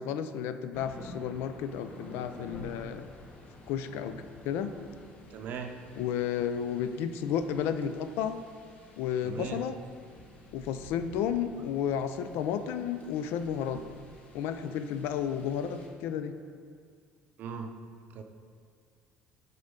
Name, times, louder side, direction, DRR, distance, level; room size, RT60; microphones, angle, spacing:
voice 1, 0.0-3.1 3.7-4.7 5.9-8.4 9.0-9.8 10.5-13.8 14.3-16.4, left 8 dB, 80° left, 10 dB, 0.4 m, -32 dB
sound 1, 0.7-15.9, left 1 dB, 40° left, 1.0 m, -50 dB
voice 2, 5.3-5.7 9.2-9.6 17.4-17.7 18.1-18.2, right 6 dB, 55° right, 6 dB, 0.6 m, -38 dB
7.0 x 4.3 x 5.1 m, 2.2 s
cardioid pair, 145°, 4 cm